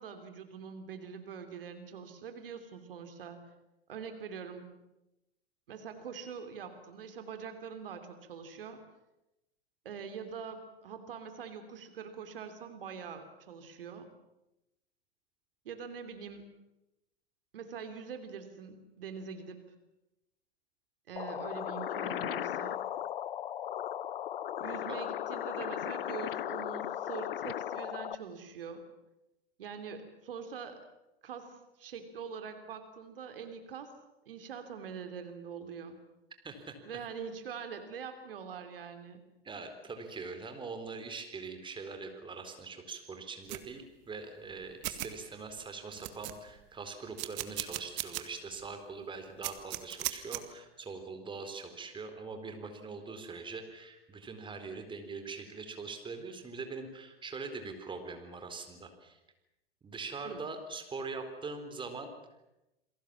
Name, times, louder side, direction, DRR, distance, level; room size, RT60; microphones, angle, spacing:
voice 1, 0.0-3.4 3.9-4.6 5.7-8.8 9.8-14.1 15.6-16.5 17.5-19.6 21.1-22.8 24.6-28.8 29.6-30.8 31.2-33.9 34.3-36.0 36.8-39.2 60.2-60.4, right 6 dB, 65° right, 8 dB, 3.2 m, -44 dB
sound 1, 21.2-28.2, left 11 dB, 65° left, 0.9 m, -36 dB
voice 2, 36.4-37.1 39.4-59.2 59.8-62.1, right 4 dB, 15° right, 7 dB, 4.2 m, -42 dB
sound 2, 43.5-43.6 44.5-44.6 44.8-45.1 45.6-45.7 45.9-46.6 47.2-48.2 48.6-48.7 49.4-50.4, right 19 dB, 40° right, 2.1 m, -37 dB
28.5 x 22.0 x 7.4 m, 0.93 s
figure-of-eight pair, 95°, 31 cm